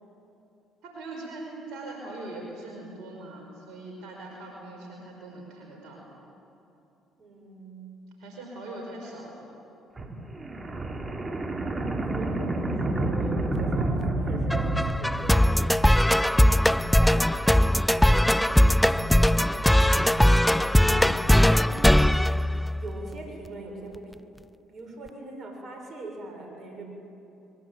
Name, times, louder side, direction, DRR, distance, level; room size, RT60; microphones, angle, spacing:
voice 1, 0.8-6.0 8.2-9.5 20.8-21.2, right 2 dB, 70° right, 0 dB, 5.3 m, -41 dB
voice 2, 7.2-8.0 11.8-16.7 17.0-20.2 20.9-24.3 24.7-26.8, right 2 dB, 50° right, 2 dB, 6.0 m, -42 dB
sound 1, 10.0-15.8, right 2 dB, 30° right, 3.1 m, -29 dB
sound 2, 14.5-23.1, left 1 dB, 5° left, 0.5 m, -20 dB
22.5 x 22.0 x 9.4 m, 2.9 s
hypercardioid pair, 55°, 0 cm